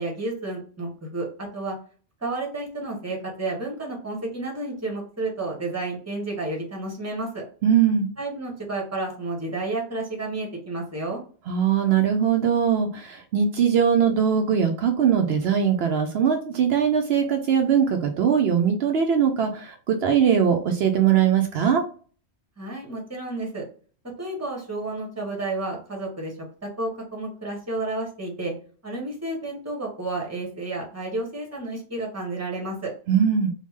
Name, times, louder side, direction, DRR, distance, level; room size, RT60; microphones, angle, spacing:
voice 1, 0.0-1.8 2.2-7.4 8.2-11.2 22.6-23.6 24.2-26.3 26.6-28.5 28.8-32.9, right 2 dB, 15° right, 0 dB, 1.0 m, -31 dB
voice 2, 7.6-8.1 11.5-21.8 33.1-33.5, right 7 dB, 70° right, 4 dB, 0.8 m, -21 dB
3.5 x 2.3 x 3.1 m, 0.41 s
omnidirectional pair, 1.1 m